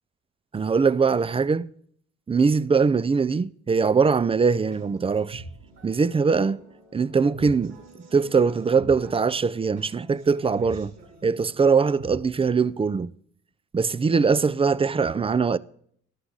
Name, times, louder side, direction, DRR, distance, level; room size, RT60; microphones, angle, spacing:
voice 1, 0.5-1.7 2.3-5.4 5.8-6.6 6.9-7.8 8.1-10.9 11.2-13.1 13.7-15.6, right 5 dB, 20° right, 0.4 m, -22 dB
sound 1, 4.4-12.7, right 2 dB, 65° right, 5.9 m, -45 dB
13.0 x 11.5 x 3.9 m
cardioid pair, 90°, 30 cm